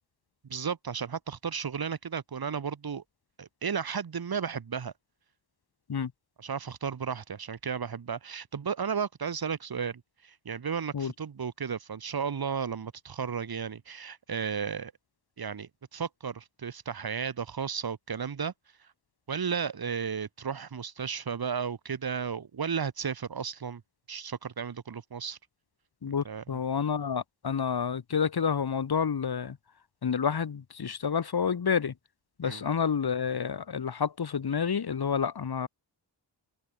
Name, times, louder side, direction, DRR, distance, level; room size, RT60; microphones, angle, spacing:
voice 1, 0.5-3.0 3.4-4.9 6.4-14.9 15.4-18.5 19.3-23.8 24.1-25.4 26.2-26.4 32.4-32.6, right 6 dB, 55° right, 4.0 m, -34 dB
voice 2, 26.0-29.6 30.0-31.9 32.4-35.7, left 6 dB, 60° left, 5.2 m, -29 dB
open air
wide cardioid pair, 130°, 43 cm